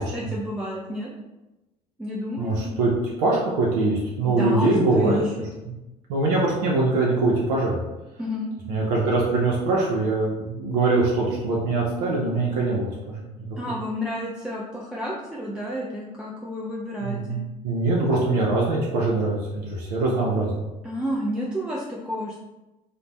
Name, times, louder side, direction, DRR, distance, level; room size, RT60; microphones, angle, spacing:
voice 1, 0.1-1.1 2.0-2.7 4.3-5.5 8.2-8.5 13.6-17.4 20.8-22.4, equal, 5° right, -5 dB, 0.4 m, -30 dB
voice 2, 2.4-5.2 6.1-7.8 8.7-13.3 17.0-20.7, right 2 dB, 70° right, -4 dB, 0.6 m, -23 dB
2.5 x 2.1 x 3.1 m, 1.0 s
figure-of-eight pair, 60°, 21 cm